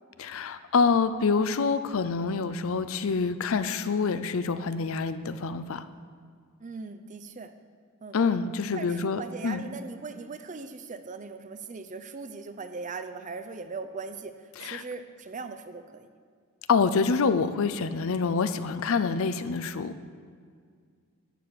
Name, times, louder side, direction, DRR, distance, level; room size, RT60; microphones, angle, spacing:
voice 1, 0.2-5.8 8.1-9.6 14.6-14.8 16.7-19.9, left 5 dB, 65° left, 12 dB, 0.5 m, -26 dB
voice 2, 6.6-7.5 8.0-8.2 8.7-16.1, right 4 dB, 35° right, 9 dB, 0.6 m, -39 dB
14.5 x 6.9 x 4.8 m, 2.1 s
head